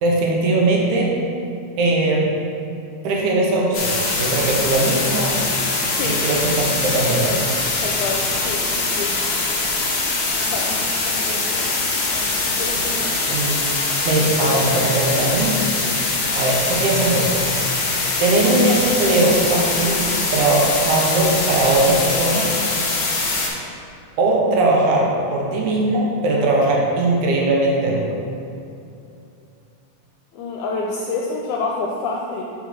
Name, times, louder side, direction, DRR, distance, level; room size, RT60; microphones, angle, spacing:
voice 1, 0.0-1.1 1.8-2.3 3.0-5.4 6.0-7.5 13.3-13.6 14.1-15.6 16.3-17.4 18.2-20.0 20.3-22.5 24.2-28.2, right 2 dB, 80° right, -2 dB, 2.3 m, -19 dB
sound 1, 3.7-23.5, left 3 dB, 60° left, 1.3 m, -22 dB
voice 2, 5.9-6.2 7.8-9.1 10.4-10.8 11.0-13.1 30.3-32.4, left 3 dB, 80° left, -1 dB, 2.0 m, -28 dB
5.5 x 4.8 x 5.8 m, 2.6 s
omnidirectional pair, 3.5 m